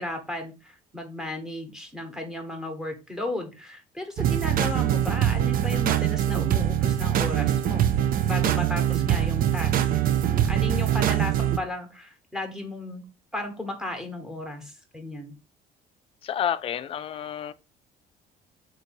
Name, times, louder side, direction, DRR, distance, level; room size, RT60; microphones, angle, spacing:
voice 1, 0.0-7.9 8.2-13.0 13.3-15.3, left 1 dB, 5° right, 1.1 m, -34 dB
sound 1, 4.2-11.6, right 11 dB, 55° right, 0.5 m, -23 dB
voice 2, 16.2-17.5, left 9 dB, 35° left, 0.3 m, -29 dB
3.9 x 2.6 x 4.3 m
cardioid pair, 110°, 17 cm